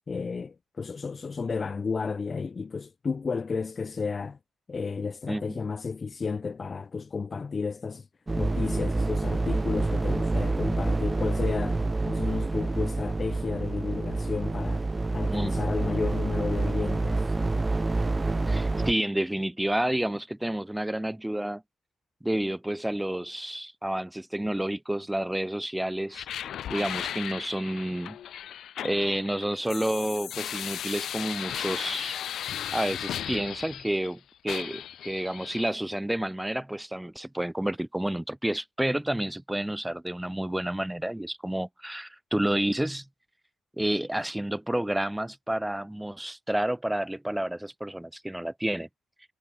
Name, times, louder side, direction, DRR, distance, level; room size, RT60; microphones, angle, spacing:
voice 1, 0.1-4.4 4.7-8.1 8.4-11.8 12.1-14.9 15.1-17.3, left 5 dB, 45° left, 3.4 m, -32 dB
voice 2, 5.3-5.6 15.3-15.7 18.5-21.6 22.2-26.3 26.7-28.2 28.8-32.2 32.7-43.0 43.8-48.9, right 1 dB, 10° right, 7.9 m, -30 dB
sound 1, 8.3-18.9, right 3 dB, 25° right, 4.5 m, -27 dB
sound 2, 26.1-34.1 34.5-35.7, left 10 dB, 70° left, 1.1 m, -36 dB
hypercardioid pair, 45°, 0 cm